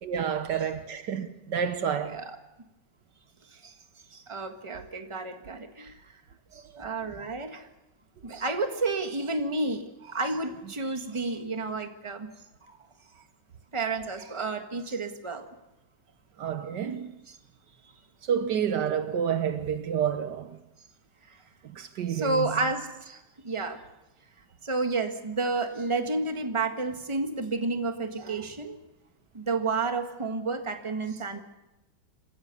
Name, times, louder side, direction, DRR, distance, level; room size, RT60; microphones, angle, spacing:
voice 1, 0.0-2.2 6.5-6.6 16.4-17.2 18.2-20.6 21.6-22.6, right 8 dB, 70° right, 1.6 m, -29 dB
voice 2, 4.1-6.0 6.5-7.7 8.2-12.3 12.7-12.8 13.7-15.5 22.1-23.8 24.6-28.8 29.3-31.4, right 3 dB, 15° right, 1.5 m, -31 dB
27.0 x 15.0 x 7.0 m
omnidirectional pair, 2.0 m